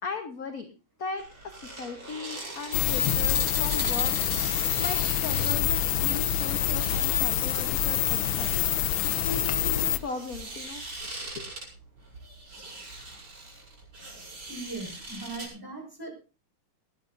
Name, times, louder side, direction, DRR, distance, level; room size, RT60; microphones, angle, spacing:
voice 1, 0.0-0.7 1.0-4.2 4.8-8.7 9.2-11.4, left 4 dB, 50° left, 7 dB, 1.4 m, -38 dB
sound 1, 1.2-15.5, right 2 dB, 65° right, 6.4 m, -41 dB
sound 2, 2.7-10.0, left 11 dB, 90° left, 1.7 m, -26 dB
voice 2, 14.5-16.1, right 3 dB, 10° right, 1 dB, 5.1 m, -39 dB
19.0 x 15.5 x 2.6 m, 0.32 s
omnidirectional pair, 2.3 m